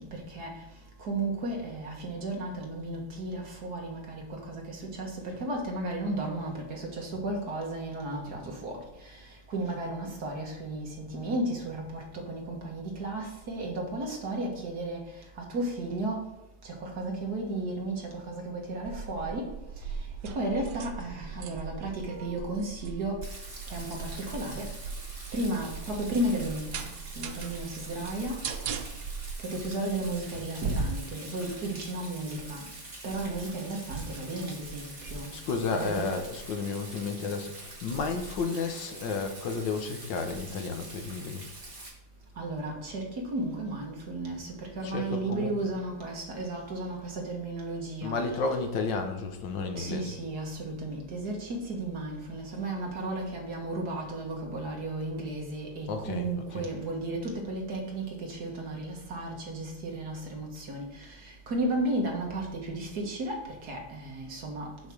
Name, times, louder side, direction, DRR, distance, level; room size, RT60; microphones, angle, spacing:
voice 1, 0.1-0.5 1.0-8.7 9.5-10.9 11.1-15.0 15.5-16.2 16.8-17.9 18.3-19.4 20.4-21.9 22.2-23.2 23.7-24.7 25.3-26.7 27.2-28.4 29.5-32.6 33.0-35.3 35.7-36.1 42.4-44.5 44.8-48.1 49.8-60.9 61.5-63.4 63.6-64.7, right 2 dB, 55° right, 0 dB, 2.0 m, -33 dB
sound 1, 18.9-29.4, right 6 dB, 80° right, 1.4 m, -40 dB
Rain, 23.2-41.9, right 2 dB, 25° right, 1.9 m, -45 dB
voice 2, 35.3-37.5 37.8-41.4 44.8-45.5 48.0-50.0 55.9-56.3 56.5-56.7, left 4 dB, 75° left, 5 dB, 1.6 m, -32 dB
6.4 x 5.4 x 6.2 m, 0.89 s
omnidirectional pair, 2.1 m